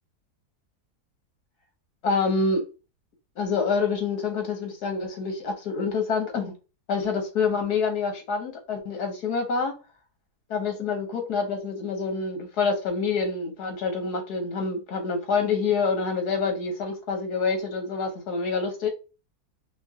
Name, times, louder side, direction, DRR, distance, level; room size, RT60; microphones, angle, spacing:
voice 1, 2.0-2.6 3.4-6.5 6.9-9.7 10.5-18.9, left 4 dB, 75° left, 1.7 m, -27 dB
4.4 x 3.5 x 2.8 m
omnidirectional pair, 1.7 m